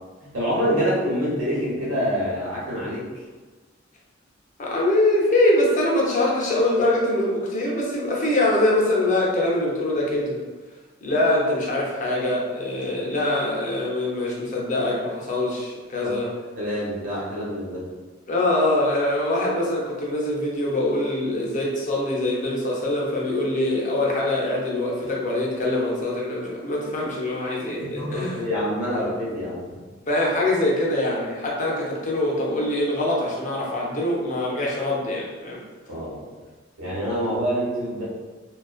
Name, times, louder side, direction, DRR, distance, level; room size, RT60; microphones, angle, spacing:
voice 1, 0.3-3.1 16.0-16.2 16.5-17.8 28.0-29.8 35.9-36.2 36.8-38.0, equal, 90° right, -7 dB, 1.1 m, -26 dB
voice 2, 4.6-10.4 11.0-16.3 18.3-28.4 30.1-35.6, left 1 dB, 40° left, -3 dB, 0.5 m, -23 dB
2.4 x 2.2 x 2.3 m, 1.3 s
head